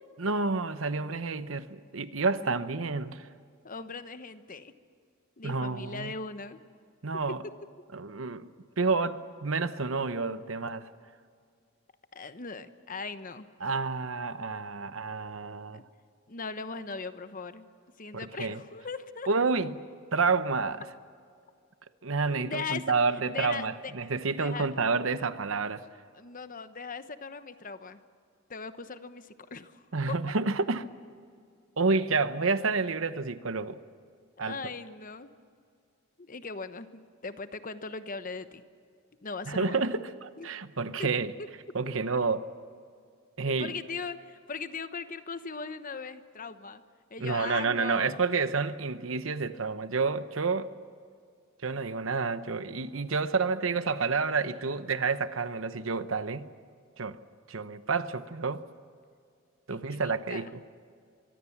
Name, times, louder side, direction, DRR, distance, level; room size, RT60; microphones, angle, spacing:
voice 1, 0.2-3.3 5.4-6.1 7.0-7.4 7.9-8.5 8.8-10.9 13.6-15.8 18.1-18.6 19.3-19.8 20.1-20.8 22.0-25.8 29.9-30.9 31.8-33.8 34.4-34.6 39.5-41.3 41.7-42.5 43.4-43.7 47.2-50.7 51.6-56.5 57.0-57.2 57.5-58.6 59.7-60.5, right 4 dB, 70° right, 1.0 m, -29 dB
voice 2, 3.6-4.7 5.4-6.6 12.1-13.5 15.7-15.8 16.3-17.7 18.0-19.3 22.4-22.8 23.3-24.1 24.4-24.7 26.1-28.0 28.5-29.8 34.4-35.3 36.2-38.6 39.2-39.9 40.4-40.5 41.0-41.1 43.6-46.8 47.1-48.2 59.7-60.5, left 4 dB, 40° left, 1.0 m, -39 dB
24.0 x 23.5 x 7.3 m
head